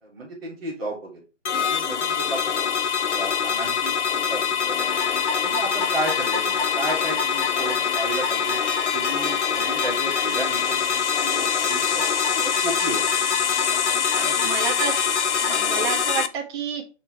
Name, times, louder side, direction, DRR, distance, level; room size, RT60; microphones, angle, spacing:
voice 1, 0.0-1.2 1.7-2.4 3.1-5.0 5.4-8.6 8.9-12.1 12.3-13.0 14.2-14.5, right 2 dB, ahead, -15 dB, 0.6 m, -33 dB
sound 1, 1.4-16.3, left 7 dB, 65° left, 0.8 m, -24 dB
sound 2, 4.8-15.7, left 4 dB, 40° left, 1.2 m, -34 dB
voice 2, 14.1-14.9 15.4-16.8, right 6 dB, 20° right, 2 dB, 1.2 m, -29 dB
7.4 x 4.3 x 4.5 m, 0.33 s
hypercardioid pair, 155°, 37 cm